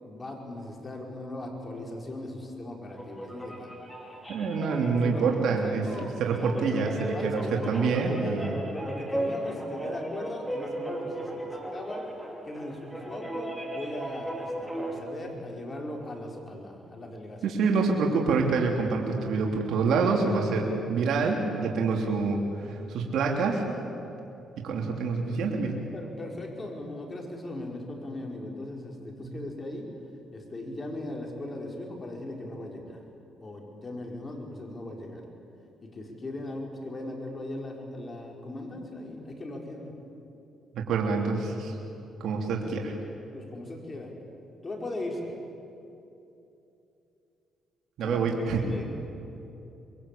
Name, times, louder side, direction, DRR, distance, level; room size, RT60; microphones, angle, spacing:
voice 1, 0.0-3.7 4.7-6.1 6.4-7.7 8.7-12.1 12.4-17.6 25.9-29.9 30.3-33.0 33.4-35.2 35.8-39.9 43.3-44.1 44.6-45.4 48.0-48.9, left 1 dB, 30° left, 1 dB, 5.3 m, -38 dB
sound 1, 2.9-15.0, right 1 dB, ahead, 4.9 m, -36 dB
voice 2, 4.3-8.6 17.4-23.6 24.6-25.8 29.2-29.3 40.7-41.7 42.2-42.9 48.0-48.6, right 4 dB, 75° right, 0 dB, 3.3 m, -27 dB
26.0 x 22.0 x 8.7 m, 2.8 s
cardioid pair, 90°, 0 cm